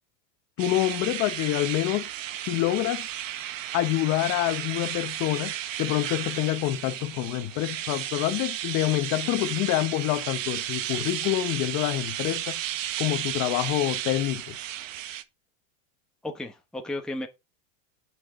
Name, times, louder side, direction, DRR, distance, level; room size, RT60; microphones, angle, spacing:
voice 1, 0.6-2.1 2.5-3.1 3.7-5.5 5.8-12.6 13.0-14.5, left 15 dB, 40° left, 1.2 m, -27 dB
sound 1, 0.6-15.2, right 12 dB, 85° right, 1.7 m, -34 dB
voice 2, 16.2-17.3, left 1 dB, ahead, 1.3 m, -34 dB
18.5 x 6.2 x 3.9 m
supercardioid pair, 150°, 38 cm